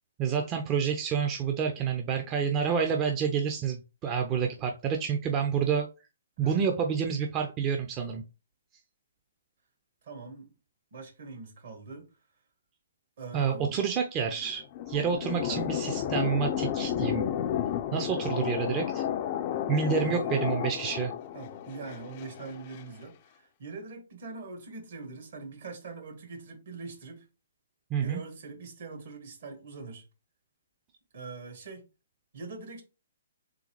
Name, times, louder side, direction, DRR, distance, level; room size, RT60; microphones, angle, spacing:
voice 1, 0.2-5.9 6.4-8.2 13.3-17.2 17.9-19.0 19.7-21.1 27.9-28.2, right 7 dB, 25° right, 0.5 m, -28 dB
voice 2, 10.0-10.5 10.9-12.1 13.2-13.8 15.5-15.6 20.0-20.5 21.3-27.3 28.0-30.0 31.1-31.9 32.3-32.8, right 4 dB, 60° right, 1.5 m, -43 dB
sound 1, 14.3-22.8, left 10 dB, 40° left, 0.4 m, -32 dB
3.8 x 3.4 x 3.1 m
hypercardioid pair, 135°, 0 cm